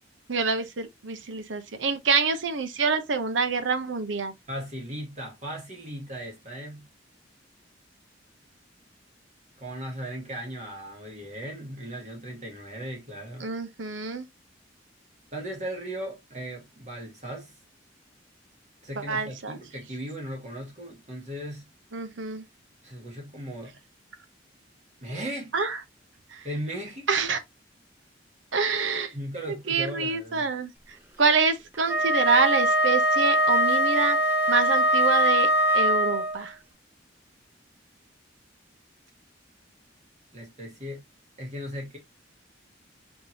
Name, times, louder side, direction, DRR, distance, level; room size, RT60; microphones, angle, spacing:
voice 1, 0.3-4.3 13.4-14.3 18.9-19.6 21.9-22.4 25.5-25.8 26.3-26.5 27.1-27.4 28.5-29.1 29.5-34.2 34.5-36.6, right 4 dB, 85° right, 0.8 m, -26 dB
voice 2, 4.5-6.9 9.6-13.5 15.3-17.5 18.8-21.7 22.8-23.7 25.0-25.5 26.4-27.3 29.1-30.5 40.3-41.0 41.4-42.0, equal, 40° right, 1.5 m, -37 dB
Wind instrument woodwind instrument, 31.8-36.4, equal, 10° right, 0.6 m, -22 dB
4.4 x 3.6 x 2.8 m
head